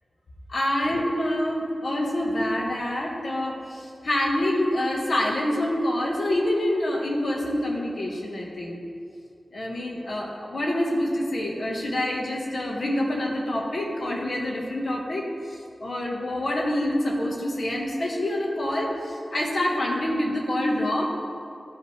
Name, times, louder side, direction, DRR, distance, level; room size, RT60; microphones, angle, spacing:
voice 1, 0.5-8.8 9.5-21.1, left 1 dB, 55° left, -1 dB, 1.5 m, -26 dB
14.0 x 5.4 x 3.4 m, 2.4 s
wide cardioid pair, 105°, 0 cm